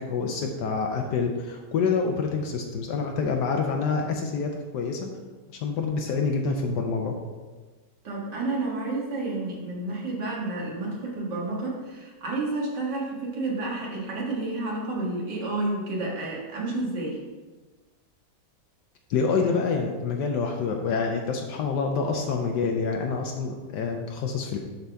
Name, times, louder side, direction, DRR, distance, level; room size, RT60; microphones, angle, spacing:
voice 1, 0.0-5.1 5.5-7.2 19.1-24.6, left 5 dB, 75° left, 2 dB, 1.3 m, -27 dB
voice 2, 8.0-17.2, right 2 dB, 75° right, -3 dB, 2.2 m, -30 dB
12.0 x 4.0 x 3.4 m, 1.3 s
omnidirectional pair, 1.9 m